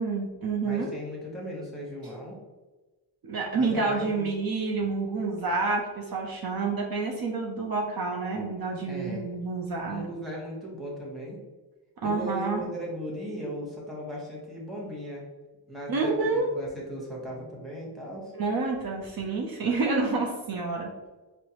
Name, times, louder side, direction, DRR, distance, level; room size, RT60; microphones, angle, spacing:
voice 1, 0.0-0.9 3.2-10.0 12.0-12.6 15.9-16.5 18.3-20.9, right 3 dB, 55° right, -1 dB, 0.7 m, -28 dB
voice 2, 0.6-2.4 3.5-4.3 8.9-9.3 9.9-11.4 12.0-15.2 15.7-18.3, equal, ahead, -3 dB, 1.3 m, -37 dB
4.4 x 2.1 x 2.9 m, 1.2 s
cardioid pair, 90°, 43 cm